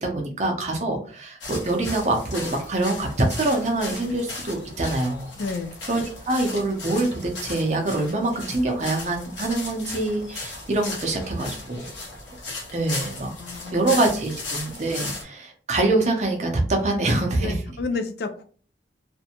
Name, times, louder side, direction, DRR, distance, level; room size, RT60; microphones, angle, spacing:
voice 1, 0.0-5.3 5.9-11.9 12.7-13.3 13.7-17.6, right 2 dB, 40° right, 2 dB, 0.6 m, -25 dB
sound 1, 1.4-15.2, left 2 dB, 85° left, 0.9 m, -36 dB
voice 2, 5.4-5.7 13.4-13.8 17.4-18.4, left 3 dB, 60° left, 9 dB, 0.3 m, -30 dB
2.5 x 2.1 x 2.8 m, 0.42 s
head